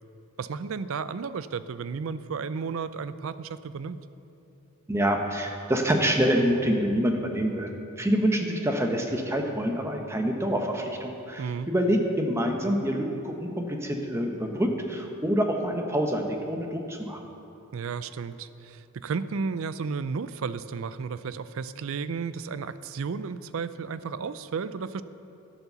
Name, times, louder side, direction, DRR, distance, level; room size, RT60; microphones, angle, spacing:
voice 1, 0.4-4.0 11.4-11.7 17.7-25.0, right 5 dB, 65° right, 14 dB, 0.4 m, -33 dB
voice 2, 4.9-7.7 8.0-17.2, equal, 10° right, 3 dB, 0.9 m, -26 dB
12.0 x 7.2 x 6.8 m, 2.8 s
head